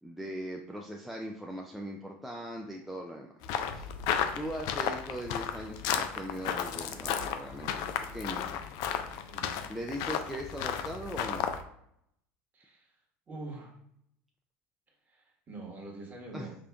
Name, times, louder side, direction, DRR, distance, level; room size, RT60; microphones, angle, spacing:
voice 1, 0.0-3.3 3.7-3.9 4.3-8.5 8.7-9.0 9.7-11.5 16.3-16.5, equal, 5° right, 0 dB, 0.4 m, -40 dB
sound 1, 3.4-11.6, left 8 dB, 65° left, 0.4 m, -34 dB
voice 2, 9.3-9.7 12.5-12.9 13.3-13.8 15.0-16.6, right 2 dB, 25° right, -1 dB, 1.3 m, -45 dB
5.1 x 2.4 x 2.3 m, 0.73 s
supercardioid pair, 100°, 7 cm